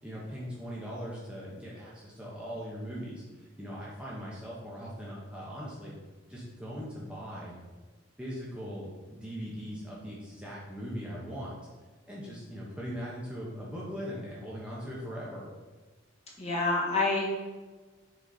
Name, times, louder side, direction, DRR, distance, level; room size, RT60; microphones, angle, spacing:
voice 1, 0.0-5.9 6.3-7.6 8.2-11.6 12.1-15.5, equal, 5° right, -6 dB, 1.0 m, -40 dB
voice 2, 16.4-17.4, left 2 dB, 30° left, -4 dB, 1.5 m, -27 dB
6.3 x 4.1 x 4.1 m, 1.3 s
head